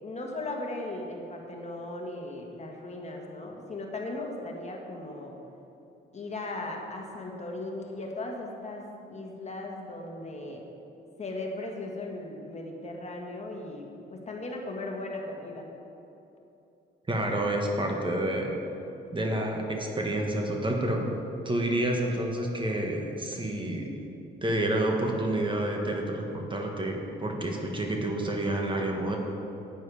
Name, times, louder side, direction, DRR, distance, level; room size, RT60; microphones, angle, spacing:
voice 1, 0.0-5.3 6.1-10.6 11.2-15.7 27.4-27.5, left 2 dB, 35° left, 0 dB, 1.7 m, -37 dB
voice 2, 17.1-18.5 19.1-21.0 21.4-23.9 24.4-29.2, right 1 dB, 25° right, 1 dB, 1.5 m, -29 dB
10.5 x 9.4 x 4.9 m, 2.9 s
cardioid pair, 90°, 20 cm